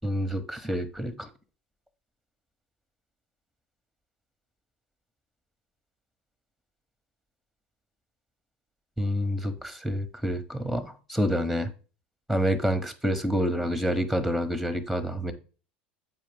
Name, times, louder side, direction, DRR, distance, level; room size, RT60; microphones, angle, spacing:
voice 1, 0.0-1.3 9.0-11.7 12.3-15.3, equal, ahead, 1.1 m, -28 dB
7.5 x 4.8 x 3.5 m
hypercardioid pair, 80°, 5 cm